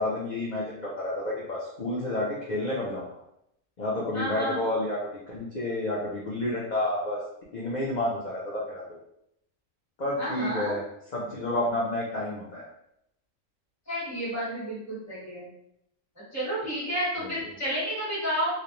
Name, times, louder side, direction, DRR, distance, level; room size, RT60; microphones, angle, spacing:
voice 1, 0.0-3.0 3.8-5.0 5.3-7.2 7.5-9.0 10.0-10.8 11.1-12.7 17.2-17.3, left 1 dB, 65° left, -6 dB, 0.4 m, -30 dB
voice 2, 4.1-4.8 10.2-10.8 13.9-15.5 16.3-18.5, equal, 15° left, -8 dB, 0.9 m, -31 dB
2.4 x 2.0 x 2.9 m, 0.76 s
omnidirectional pair, 1.4 m